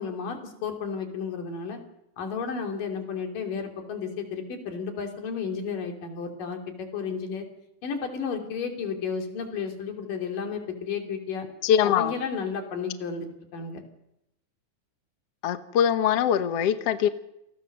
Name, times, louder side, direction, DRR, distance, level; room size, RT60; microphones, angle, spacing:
voice 1, 0.0-1.8 2.2-7.4 7.8-11.5 11.8-13.3 13.5-13.8, left 5 dB, 80° left, 3 dB, 4.5 m, -32 dB
voice 2, 11.6-12.1 15.4-17.1, left 9 dB, 60° left, 10 dB, 1.8 m, -22 dB
29.0 x 19.0 x 6.6 m, 0.85 s
omnidirectional pair, 3.8 m